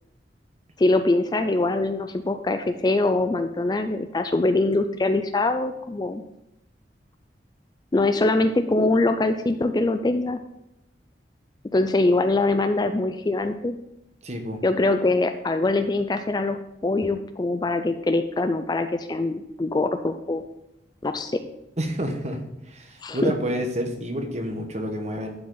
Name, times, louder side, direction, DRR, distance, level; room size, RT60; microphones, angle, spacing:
voice 1, 0.8-6.2 7.9-10.4 11.7-13.8 14.6-20.4 21.0-21.4 23.0-23.3, left 2 dB, 20° left, 8 dB, 0.4 m, -23 dB
voice 2, 14.2-14.6 21.8-22.4 22.7-25.3, equal, 40° right, 4 dB, 1.2 m, -29 dB
11.5 x 4.8 x 3.9 m, 0.85 s
head